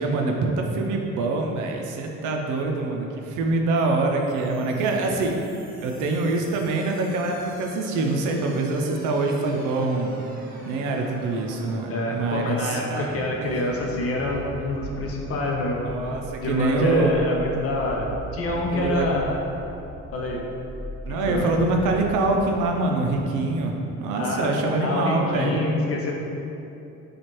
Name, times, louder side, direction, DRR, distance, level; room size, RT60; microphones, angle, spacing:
voice 1, 0.0-5.4 5.8-10.2 10.5-13.1 13.4-13.5 15.7-17.1 18.5-19.1 21.0-25.6, right 2 dB, 85° right, 2 dB, 0.5 m, -25 dB
sound 1, 3.8-22.8, right 1 dB, 30° right, 0.7 m, -41 dB
voice 2, 11.9-15.9 16.4-19.4 20.1-20.4 21.1-21.5 24.2-24.5 24.8-26.1, left 2 dB, 50° left, -1 dB, 0.6 m, -27 dB
4.5 x 2.4 x 3.0 m, 2.8 s
cardioid pair, 90°, 30 cm